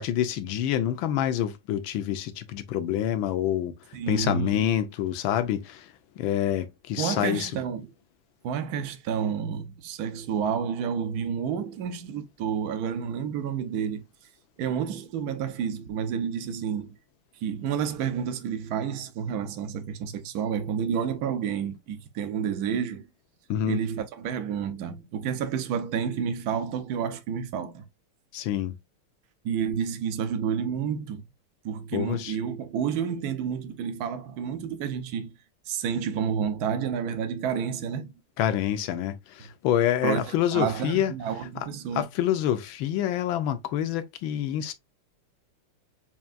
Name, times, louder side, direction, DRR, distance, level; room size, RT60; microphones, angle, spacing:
voice 1, 0.0-3.7 4.1-5.9 6.2-7.5 23.5-23.8 28.3-28.7 31.9-32.4 38.4-41.1 41.9-44.7, left 11 dB, 75° left, 1.3 m, -27 dB
voice 2, 3.9-4.7 7.0-7.9 8.4-14.0 14.6-16.9 17.4-23.0 23.7-27.9 29.4-31.2 31.6-35.3 35.7-38.1 40.0-42.1, right 7 dB, 80° right, 0.8 m, -30 dB
5.7 x 2.6 x 2.4 m
omnidirectional pair, 2.4 m